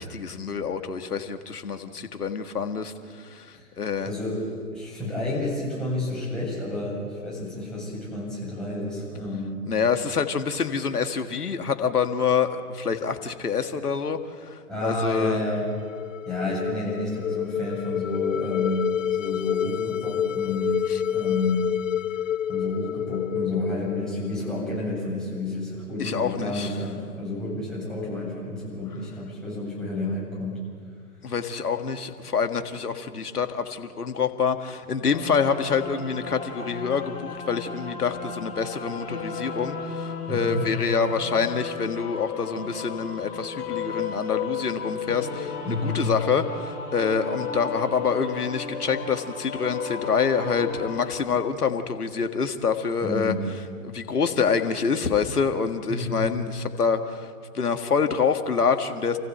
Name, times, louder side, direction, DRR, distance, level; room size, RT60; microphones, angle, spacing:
voice 1, 0.0-4.1 9.7-14.2 14.5-15.4 20.9-21.0 26.0-26.7 31.2-53.3 53.8-59.2, left 6 dB, 75° left, 7 dB, 2.0 m, -26 dB
voice 2, 4.0-4.4 4.7-9.6 14.7-15.7 16.3-20.7 21.1-21.7 22.5-30.6 40.3-40.6 45.6-46.0 53.0-53.4 55.9-56.3, left 2 dB, ahead, -7 dB, 8.0 m, -30 dB
sound 1, 15.4-24.6, left 10 dB, 55° left, 0.6 m, -29 dB
Half Cine, 35.1-51.1, left 6 dB, 30° left, 6.7 m, -34 dB
28.5 x 15.0 x 8.0 m, 2.1 s
figure-of-eight pair, 125°, 46 cm